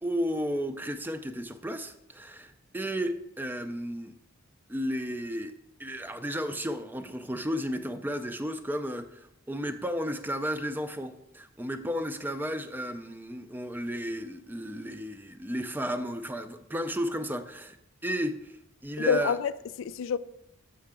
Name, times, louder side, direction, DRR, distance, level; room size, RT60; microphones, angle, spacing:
voice 1, 0.0-4.1 4.7-5.5 5.8-17.8 18.0-19.4, equal, 10° right, 0.4 m, -33 dB
voice 2, 19.0-20.2, left 7 dB, 65° left, 0.3 m, -28 dB
7.5 x 5.7 x 3.6 m
head